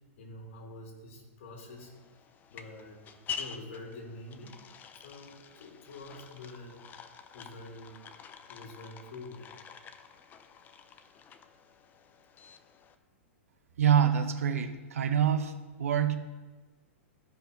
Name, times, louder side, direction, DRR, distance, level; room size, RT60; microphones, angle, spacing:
voice 1, 0.2-1.9 2.5-3.1 3.3-4.6 5.0-6.8 7.3-8.0 8.5-9.5, left 2 dB, 60° left, 1 dB, 3.1 m, -46 dB
sound 1, 1.7-12.9, left 7 dB, 25° left, 0.7 m, -47 dB
voice 2, 13.8-15.5 15.8-16.2, right 9 dB, 80° right, 8 dB, 1.0 m, -25 dB
14.0 x 5.5 x 5.2 m, 1.3 s
hypercardioid pair, 130°, 8 cm